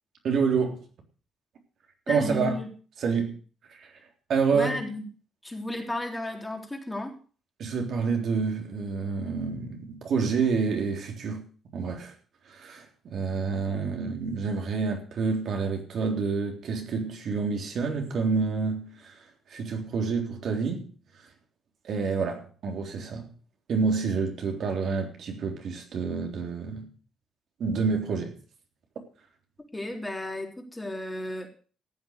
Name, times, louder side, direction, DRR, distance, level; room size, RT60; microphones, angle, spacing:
voice 1, 0.2-0.8 2.1-2.6 3.0-3.4 3.7-3.9 4.3-4.8 7.6-11.4 11.7-12.1 12.4-20.9 21.1-21.3 21.8-23.3 23.7-26.9 27.6-28.4, right 5 dB, 65° right, 3.7 m, -28 dB
voice 2, 2.1-2.7 4.5-5.0 5.4-7.2 29.7-31.5, left 1 dB, 10° left, 3.7 m, -33 dB
14.5 x 8.4 x 6.7 m
cardioid pair, 90°, 0 cm